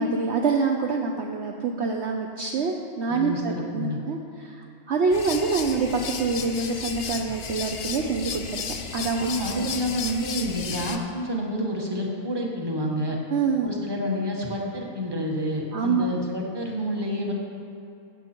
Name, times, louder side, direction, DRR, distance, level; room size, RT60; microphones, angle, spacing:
voice 1, 0.0-8.6 8.9-9.3 13.3-13.7 15.7-16.1, right 4 dB, 55° right, 1 dB, 1.0 m, -26 dB
voice 2, 3.1-4.0 9.2-13.2 13.6-17.3, equal, 15° right, -1 dB, 1.4 m, -29 dB
sound 1, 5.1-11.0, left 6 dB, 50° left, 0.9 m, -34 dB
15.5 x 8.1 x 4.5 m, 2.7 s
omnidirectional pair, 1.5 m